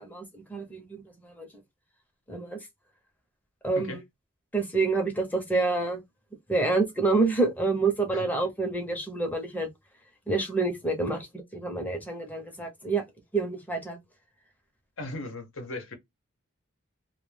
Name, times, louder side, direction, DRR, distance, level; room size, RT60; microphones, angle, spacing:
voice 1, 0.0-1.5 2.3-2.6 3.6-4.0 4.5-6.0 6.5-9.7 10.3-13.0 13.3-14.0, right 3 dB, 10° left, 0.7 m, -28 dB
voice 2, 15.0-15.9, left 2 dB, 65° left, 0.8 m, -37 dB
2.2 x 2.2 x 3.2 m
head